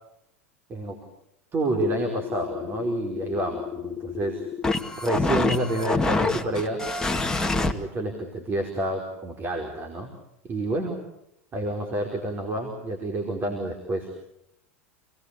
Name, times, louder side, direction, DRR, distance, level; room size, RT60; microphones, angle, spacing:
voice 1, 0.7-1.0 1.5-4.4 5.0-6.8 7.6-10.1 10.4-11.0 11.5-14.1, right 1 dB, 30° right, 3 dB, 4.7 m, -29 dB
sound 1, 1.8-7.7, left 3 dB, 10° left, 2.2 m, -27 dB
28.5 x 19.5 x 8.4 m, 0.82 s
hypercardioid pair, 90°, 7 cm